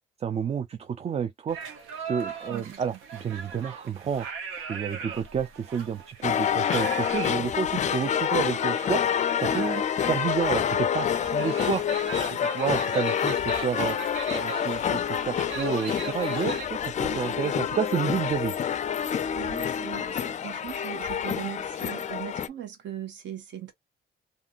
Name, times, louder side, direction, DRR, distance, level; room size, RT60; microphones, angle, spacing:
voice 1, 0.2-1.6 2.1-4.3 4.7-9.0 9.4-11.8 12.3-14.0 14.3-18.5, right 7 dB, 30° right, 0.4 m, -30 dB
sound 1, 1.5-16.7, right 6 dB, 90° right, 0.9 m, -40 dB
voice 2, 2.5-2.8 9.6-9.9 17.0-17.5 19.3-23.7, right 11 dB, 65° right, 1.2 m, -39 dB
sound 2, 6.2-22.5, left 8 dB, 40° left, 0.4 m, -27 dB
2.7 x 2.6 x 2.4 m
cardioid pair, 90°, 20 cm